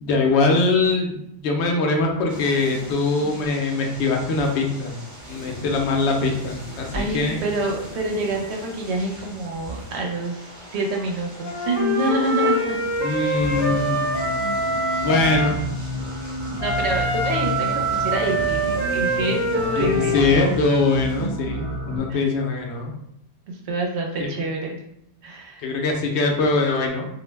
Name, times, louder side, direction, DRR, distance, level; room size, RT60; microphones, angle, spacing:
voice 1, 0.0-4.9 5.3-7.4 13.0-13.9 15.0-15.6 19.8-22.9 24.2-24.3 25.6-27.1, left 3 dB, 85° left, 1 dB, 0.9 m, -22 dB
sound 1, 2.3-21.3, right 1 dB, 20° right, 0.6 m, -40 dB
voice 2, 6.9-12.8 15.2-15.5 16.6-20.5 22.1-22.3 23.5-24.8 25.2-25.7, right 2 dB, 85° right, 0 dB, 0.9 m, -27 dB
Wind instrument woodwind instrument, 11.4-15.6 16.6-20.5, equal, 50° left, 0.5 m, -24 dB
sound 2, 13.4-22.0, equal, 60° right, 0.9 m, -30 dB
2.4 x 2.0 x 3.2 m, 0.76 s
omnidirectional pair, 1.1 m